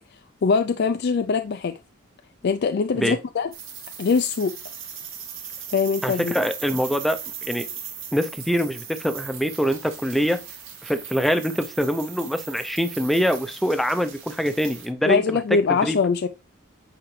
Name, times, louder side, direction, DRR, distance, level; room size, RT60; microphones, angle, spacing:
voice 1, 0.4-1.8 2.4-3.5 4.0-4.5 5.7-6.3 15.0-16.3, left 5 dB, 50° left, 0.4 m, -22 dB
sound 1, 3.5-14.9, right 8 dB, 70° right, 2.1 m, -38 dB
voice 2, 6.0-7.7 8.1-10.4 10.8-15.4 15.7-16.0, equal, ahead, 0.6 m, -24 dB
9.0 x 4.8 x 3.2 m
head